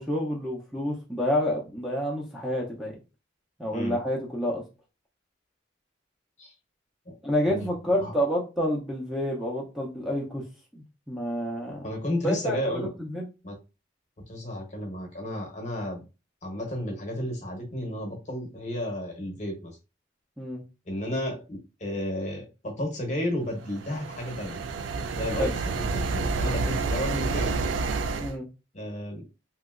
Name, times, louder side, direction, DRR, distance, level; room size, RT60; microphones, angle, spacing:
voice 1, 0.0-2.9 3.6-4.6 7.2-10.4 10.7-11.9 12.2-13.3 20.4-20.6 25.4-25.5 28.2-28.5, equal, ahead, -3 dB, 0.5 m, -29 dB
voice 2, 11.8-12.9 13.4-13.5 14.3-16.0 16.4-19.7 20.9-24.6 25.1-27.5 28.7-29.2, left 1 dB, 40° left, 2 dB, 0.8 m, -32 dB
sound 1, 23.6-28.3, right 4 dB, 80° right, 0.3 m, -29 dB
2.9 x 2.6 x 2.4 m, 0.30 s
head